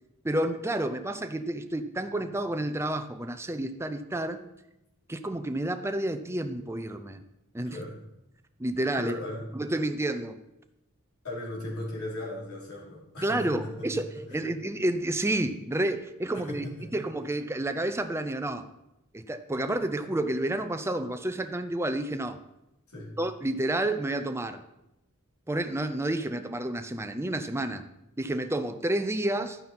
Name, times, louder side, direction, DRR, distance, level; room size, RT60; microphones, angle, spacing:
voice 1, 0.2-4.4 5.1-7.2 7.5-7.8 8.6-9.1 9.5-10.4 13.2-16.6 16.9-18.7 19.1-22.4 23.2-24.6 25.5-27.8 28.2-29.6, right 1 dB, 10° right, 8 dB, 0.6 m, -30 dB
voice 2, 9.0-9.4 11.2-13.7 16.5-17.0 22.9-23.1, left 1 dB, 80° left, -6 dB, 3.4 m, -37 dB
12.0 x 9.6 x 4.3 m, 0.88 s
head